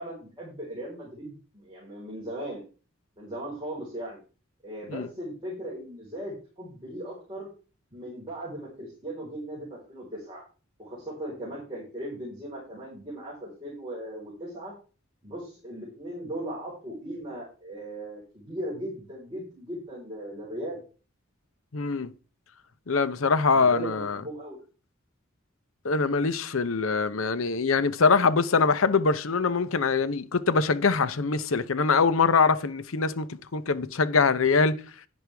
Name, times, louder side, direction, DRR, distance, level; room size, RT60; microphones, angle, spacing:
voice 1, 0.0-2.6 3.2-4.2 4.6-7.5 7.9-10.4 10.8-14.7 15.2-20.8 23.5-24.6, right 1 dB, 25° right, 4.2 m, -38 dB
voice 2, 21.7-22.1 22.9-24.2 25.8-34.8, left 4 dB, 80° left, 0.8 m, -23 dB
10.5 x 9.8 x 3.4 m
head